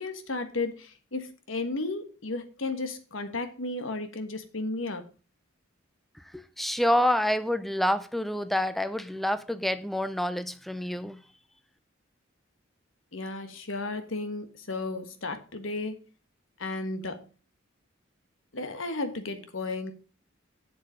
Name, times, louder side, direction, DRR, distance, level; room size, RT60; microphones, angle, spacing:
voice 1, 0.0-5.1 13.1-16.0 16.6-17.3 18.5-19.9, left 3 dB, 85° left, 1.4 m, -34 dB
voice 2, 6.3-11.2, left 1 dB, ahead, 0.5 m, -27 dB
7.7 x 7.2 x 5.0 m
head